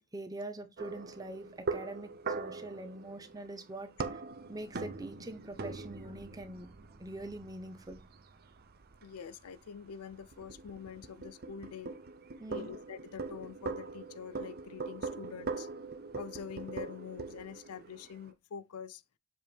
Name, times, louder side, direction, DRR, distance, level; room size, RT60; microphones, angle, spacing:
voice 1, 0.0-4.2 4.5-6.7 7.0-8.0 12.4-12.7, right 1 dB, 15° right, 0.8 m, -44 dB
sound 1, 0.8-18.3, right 4 dB, 45° right, 0.7 m, -42 dB
voice 2, 9.0-12.0 12.5-15.7 16.1-19.0, left 7 dB, 90° left, 0.5 m, -45 dB
7.4 x 3.5 x 4.4 m
head